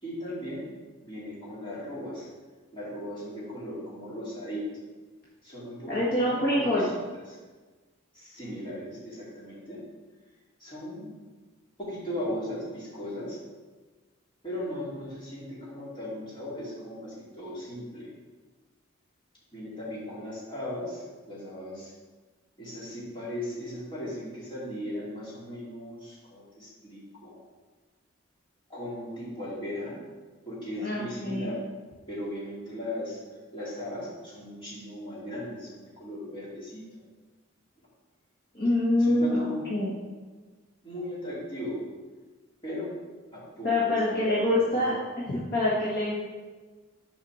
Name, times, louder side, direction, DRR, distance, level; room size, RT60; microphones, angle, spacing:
voice 1, 0.0-0.7 1.0-2.3 2.7-4.7 5.4-7.0 7.3-7.4 8.1-9.8 10.6-11.1 11.8-13.4 14.4-18.1 19.5-21.9 22.6-27.4 28.7-30.0 30.5-31.6 32.1-33.2 33.5-36.8 39.0-39.7 40.8-41.8 42.6-42.9 43.3-44.9, left 1 dB, 25° left, -8 dB, 2.8 m, -37 dB
voice 2, 5.9-6.9 30.8-31.5 38.5-39.4 39.7-39.9 43.6-46.2, left 1 dB, 45° left, -8 dB, 1.6 m, -25 dB
7.0 x 4.9 x 6.4 m, 1.3 s
head